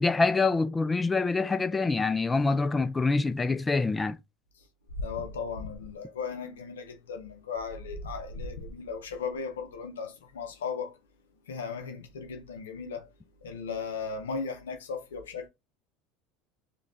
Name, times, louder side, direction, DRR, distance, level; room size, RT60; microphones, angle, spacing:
voice 1, 0.0-4.2, left 3 dB, 20° left, 0.3 m, -25 dB
voice 2, 5.0-11.0 11.5-13.1 13.4-15.5, left 5 dB, 90° left, 0.5 m, -36 dB
5.0 x 2.2 x 2.4 m
hypercardioid pair, 85°, 0 cm